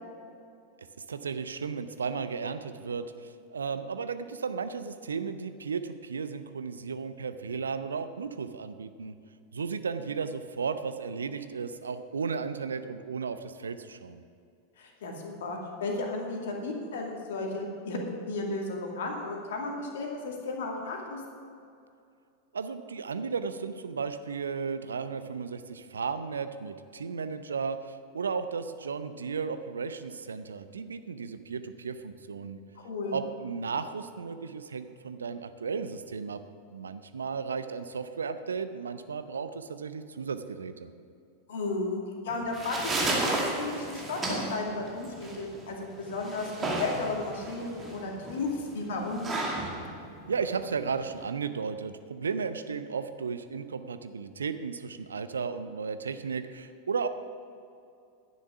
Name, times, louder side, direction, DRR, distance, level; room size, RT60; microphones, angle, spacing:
voice 1, 1.1-9.1 9.5-14.2 22.5-32.6 33.1-36.4 36.7-40.9 50.3-57.1, right 5 dB, 70° right, 11 dB, 0.6 m, -34 dB
voice 2, 14.8-18.0 18.3-21.2 32.8-33.2 41.5-49.3, left 3 dB, 60° left, 0 dB, 2.3 m, -34 dB
sound 1, 42.3-51.3, right 2 dB, 20° right, 2.3 m, -34 dB
11.0 x 10.0 x 6.0 m, 2.5 s
figure-of-eight pair, 90°, 0 cm